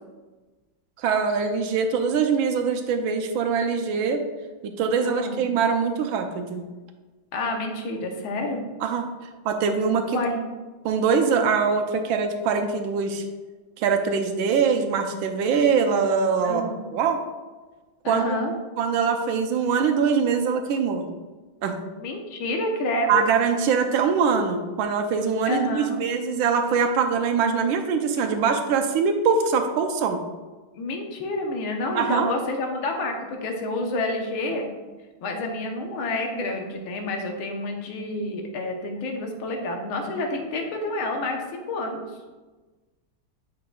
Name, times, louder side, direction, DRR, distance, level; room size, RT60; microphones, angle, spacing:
voice 1, 1.0-4.2 4.6-6.6 8.8-9.1 9.4-10.2 10.8-13.2 13.8-16.6 16.9-17.2 18.1-18.4 18.8-21.1 21.6-21.7 23.1-30.2 32.0-32.3, right 5 dB, 80° right, 6 dB, 1.4 m, -23 dB
voice 2, 5.0-5.4 7.3-8.6 10.1-10.4 16.4-16.7 18.0-18.5 22.0-23.2 25.4-26.0 30.8-34.7 35.2-42.1, left 2 dB, 85° left, 2 dB, 1.7 m, -29 dB
8.5 x 5.7 x 2.3 m, 1.2 s
omnidirectional pair, 2.2 m